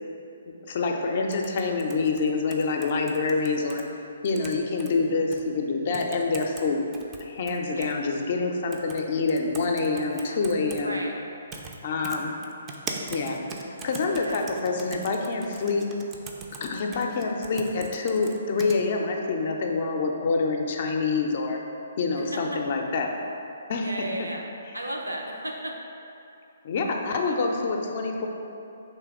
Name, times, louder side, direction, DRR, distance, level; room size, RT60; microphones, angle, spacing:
voice 1, 0.5-3.8 4.2-6.9 7.2-11.0 11.8-12.4 13.1-13.4 13.8-15.9 16.6-21.6 22.0-23.1 23.7-23.9 26.6-28.3, left 4 dB, 45° left, 2 dB, 0.4 m, -26 dB
sound 1, 1.3-3.8 4.2-4.9 5.3-5.4 5.9-6.6 6.9-7.9 8.7-9.0 9.3-10.8 11.5-11.8 12.0-18.8, right 4 dB, 20° right, 0.3 m, -40 dB
voice 2, 14.2-14.5 22.1-22.6 23.8-24.5 24.7-25.8 27.0-27.3, right 1 dB, 80° right, 0 dB, 0.6 m, -36 dB
3.4 x 3.0 x 4.6 m, 2.7 s
figure-of-eight pair, 130°, 0 cm